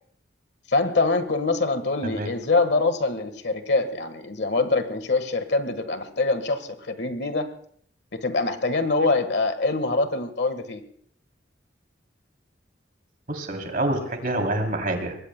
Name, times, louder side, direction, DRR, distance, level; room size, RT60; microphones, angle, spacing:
voice 1, 0.7-7.5 8.1-10.8, left 3 dB, 65° left, 9 dB, 1.4 m, -24 dB
voice 2, 13.3-15.2, right 1 dB, 50° right, 4 dB, 3.0 m, -27 dB
25.0 x 21.0 x 2.2 m, 0.62 s
head